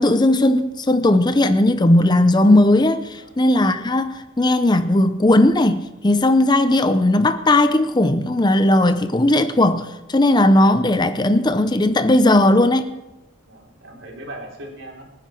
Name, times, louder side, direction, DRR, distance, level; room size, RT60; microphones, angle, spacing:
voice 1, 0.0-12.9, left 1 dB, 20° left, 0.6 m, -17 dB
voice 2, 13.5-15.3, right 1 dB, 70° right, 4.0 m, -39 dB
25.0 x 10.0 x 4.5 m
head